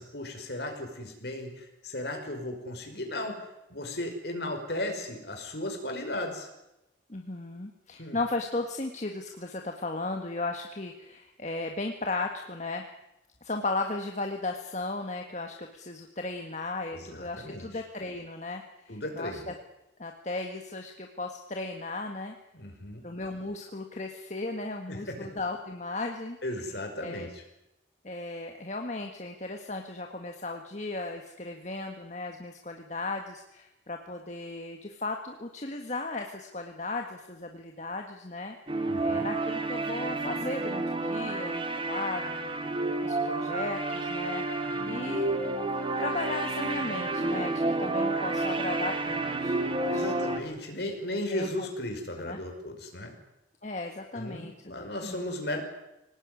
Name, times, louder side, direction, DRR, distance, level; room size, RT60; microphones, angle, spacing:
voice 1, 0.0-6.5 8.0-8.2 16.9-17.8 18.9-19.5 22.5-23.0 24.9-25.3 26.4-27.4 38.9-39.3 49.9-53.1 54.1-55.6, left 1 dB, 55° left, 4 dB, 5.4 m, -36 dB
voice 2, 7.1-12.8 13.4-19.5 20.0-22.3 23.0-26.4 27.0-27.3 28.0-42.6 43.0-45.3 45.7-50.4 51.3-51.7 52.2-52.4 53.6-55.3, left 2 dB, 40° left, 3 dB, 1.7 m, -36 dB
sound 1, 38.7-50.4, right 2 dB, 30° right, 2.2 m, -30 dB
25.0 x 18.5 x 9.8 m, 0.92 s
head